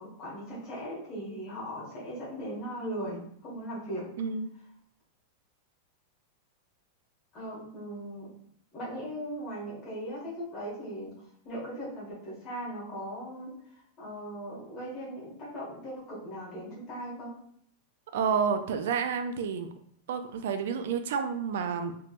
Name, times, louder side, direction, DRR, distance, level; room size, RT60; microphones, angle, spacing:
voice 1, 0.0-4.0 7.3-8.3 8.7-11.1 11.4-17.3, equal, 30° left, -6 dB, 1.4 m, -39 dB
voice 2, 4.2-4.5 18.1-19.7 20.1-21.9, right 6 dB, 70° right, 8 dB, 0.3 m, -30 dB
3.3 x 3.0 x 2.4 m, 0.66 s
supercardioid pair, 165°, 0 cm